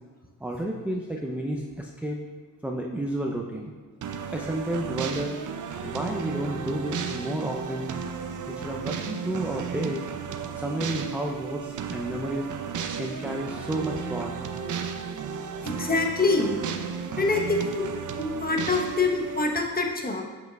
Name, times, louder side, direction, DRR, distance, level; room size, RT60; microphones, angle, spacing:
voice 1, 0.4-2.2 2.6-3.7 4.3-5.4 5.8-7.9 8.5-10.0 10.6-12.5 13.0-14.4, right 1 dB, 5° right, 0 dB, 0.5 m, -31 dB
sound 1, 4.0-19.5, right 6 dB, 45° right, 0.6 m, -34 dB
voice 2, 15.6-16.6 17.2-17.8 18.2-20.2, left 3 dB, 20° left, 1 dB, 1.0 m, -25 dB
7.2 x 5.7 x 2.3 m, 1.4 s
supercardioid pair, 55°, 41 cm